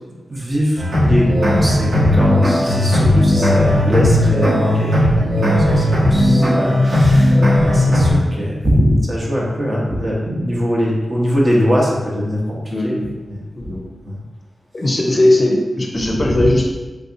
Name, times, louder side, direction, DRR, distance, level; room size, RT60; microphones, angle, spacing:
voice 1, 0.3-5.2 5.5-12.6 12.8-12.9 13.2-13.7 14.0-14.2 16.4-16.5, equal, 40° right, -4 dB, 0.9 m, -21 dB
sound 1, 0.8-8.1, left 1 dB, 65° right, 1.4 m, -15 dB
voice 2, 12.7-13.2 13.6-13.9 14.7-16.7, left 1 dB, 35° left, 0 dB, 0.5 m, -18 dB
3.4 x 2.6 x 2.6 m, 1.2 s
cardioid pair, 55°, 0 cm